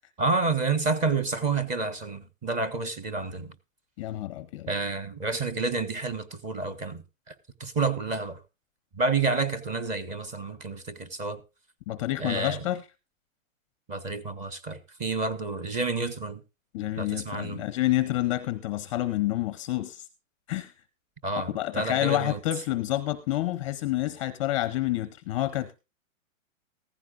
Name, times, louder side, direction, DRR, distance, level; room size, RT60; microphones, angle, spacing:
voice 1, 0.2-3.5 4.7-7.3 7.6-8.4 8.9-11.4 12.2-12.6 13.9-16.4 17.0-17.6 21.2-22.4, right 3 dB, 20° right, 1.4 m, -29 dB
voice 2, 4.0-4.7 11.9-12.8 16.7-20.1 20.5-20.7 21.5-25.8, left 15 dB, 25° left, 0.7 m, -28 dB
15.5 x 15.5 x 2.5 m
hypercardioid pair, 160°, 41 cm